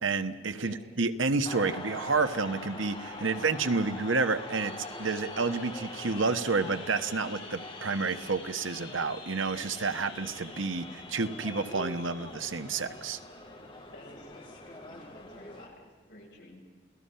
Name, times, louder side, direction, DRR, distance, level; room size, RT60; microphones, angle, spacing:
voice 1, 0.0-4.7 5.0-13.2, right 4 dB, 90° right, 10 dB, 1.3 m, -30 dB
sound 1, 1.5-15.7, left 2 dB, 30° left, 3.5 m, -43 dB
voice 2, 13.9-16.6, left 1 dB, 60° left, -2 dB, 7.3 m, -52 dB
28.5 x 18.0 x 5.7 m, 1.4 s
head